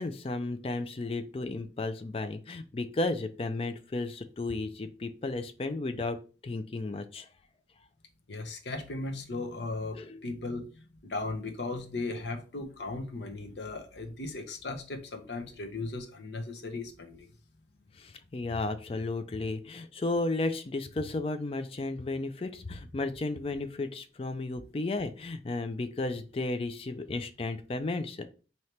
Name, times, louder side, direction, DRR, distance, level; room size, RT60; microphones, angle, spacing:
voice 1, 0.0-6.2 6.4-7.3 9.9-10.2 17.9-28.3, left 2 dB, 30° left, 0.4 m, -33 dB
voice 2, 8.3-10.7 11.0-17.3, left 3 dB, 80° left, 0.8 m, -37 dB
4.3 x 2.8 x 3.2 m
head